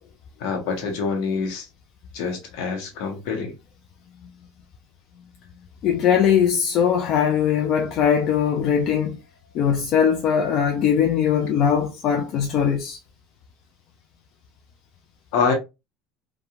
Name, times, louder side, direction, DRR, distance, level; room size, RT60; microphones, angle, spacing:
voice 1, 0.4-1.7 2.1-3.5 15.3-15.5, left 5 dB, 70° left, 0.9 m, -25 dB
voice 2, 5.8-9.2 9.5-13.0, left 8 dB, 50° left, 0.4 m, -20 dB
2.8 x 2.3 x 2.4 m
supercardioid pair, 100°, 0 cm